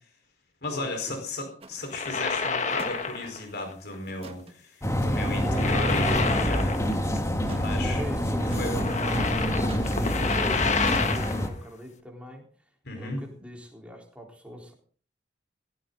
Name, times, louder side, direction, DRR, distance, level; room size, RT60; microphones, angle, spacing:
voice 1, 0.6-6.8 7.4-8.0 8.6-8.9 12.8-13.2, left 2 dB, 60° left, 5 dB, 4.5 m, -35 dB
sound 1, 1.6-1.8 2.7-3.0 3.2-3.3 4.1-4.5 6.1-6.4 7.4-7.7 8.5-8.9 9.6-9.9 10.8-11.1, right 2 dB, 35° right, 1.7 m, -42 dB
sound 2, 1.8-3.4 3.7-3.9 5.3-7.2 7.4-7.5 8.4-11.5, left 4 dB, 40° left, 1.5 m, -29 dB
sound 3, 4.8-11.5, equal, 15° left, 1.6 m, -27 dB
voice 2, 5.3-6.5 7.7-9.3 9.9-12.5 12.9-14.7, equal, 5° right, 0 dB, 3.9 m, -40 dB
16.5 x 16.0 x 3.9 m, 0.42 s
head